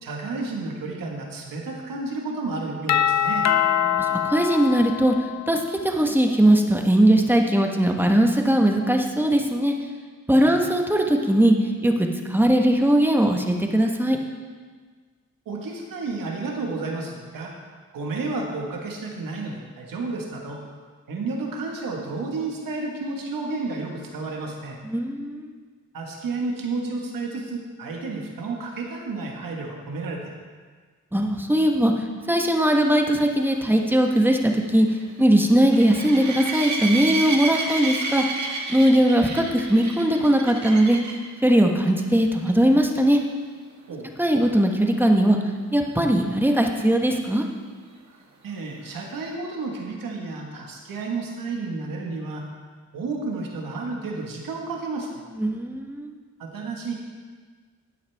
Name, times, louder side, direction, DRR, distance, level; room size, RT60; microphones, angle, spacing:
voice 1, 0.0-3.5 10.4-10.6 15.4-17.5 17.9-20.6 21.1-24.8 25.9-30.2 43.9-44.1 48.4-52.4 52.9-55.1 56.4-57.0, right 3 dB, 85° right, 0 dB, 1.7 m, -31 dB
Doorbell, 2.9-5.7, left 9 dB, 55° left, 0.5 m, -23 dB
voice 2, 3.8-5.1 5.5-9.7 10.3-11.5 11.8-14.2 24.8-25.5 31.1-31.9 32.3-34.9 35.2-38.2 38.7-41.0 41.4-43.2 44.2-45.4 45.7-47.5 55.4-56.2, right 1 dB, 5° right, 2 dB, 1.3 m, -20 dB
sound 1, 33.3-41.3 41.9-42.2 42.5-42.6 43.0-43.1 46.6-46.7, right 3 dB, 60° right, 1.7 m, -31 dB
12.5 x 8.8 x 3.5 m, 1.5 s
cardioid pair, 65°, 33 cm